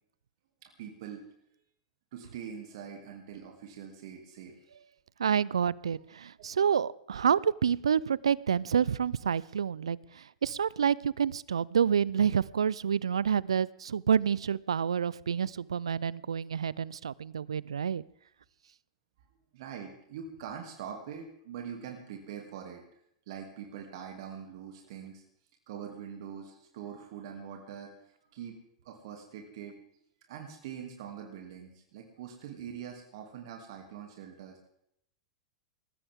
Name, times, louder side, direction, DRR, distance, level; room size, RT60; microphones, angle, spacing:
voice 1, 0.6-1.2 2.1-4.5 19.5-22.8 23.3-25.2 25.7-27.9 28.3-28.6 28.8-29.8 30.3-34.6, right 8 dB, 60° right, 2 dB, 2.7 m, -43 dB
voice 2, 5.2-18.0, right 7 dB, 85° right, 23 dB, 0.5 m, -28 dB
20.0 x 15.0 x 3.7 m, 0.72 s
hypercardioid pair, 105°, 3 cm